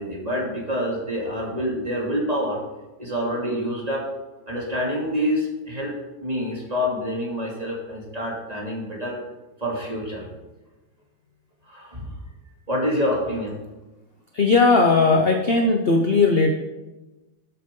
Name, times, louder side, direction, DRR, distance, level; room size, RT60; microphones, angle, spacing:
voice 1, 0.0-2.6 3.0-4.1 4.5-9.2 9.6-10.3 11.7-12.1 12.7-13.6, equal, 20° right, -3 dB, 2.7 m, -27 dB
voice 2, 14.3-16.5, left 3 dB, 45° left, 2 dB, 0.8 m, -18 dB
12.5 x 8.3 x 3.8 m, 1.1 s
omnidirectional pair, 2.1 m